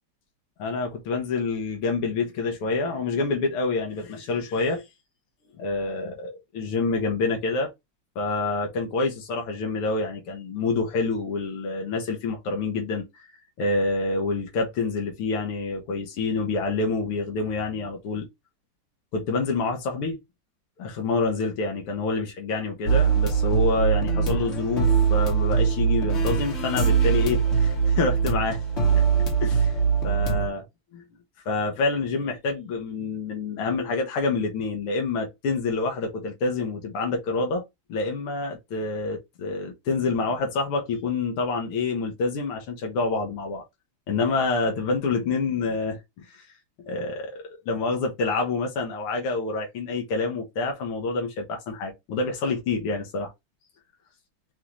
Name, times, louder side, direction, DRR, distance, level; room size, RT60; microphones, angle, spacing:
voice 1, 0.6-4.8 5.6-7.7 8.2-13.3 13.6-18.2 19.1-20.2 20.8-28.6 28.9-29.1 29.4-29.7 30.0-30.6 31.5-37.6 37.9-43.6 44.1-46.5 46.9-53.3, left 3 dB, 80° left, 2.2 m, -27 dB
sound 1, 22.9-30.5, right 6 dB, 35° left, 1.3 m, -22 dB
5.6 x 2.8 x 3.0 m
omnidirectional pair, 2.4 m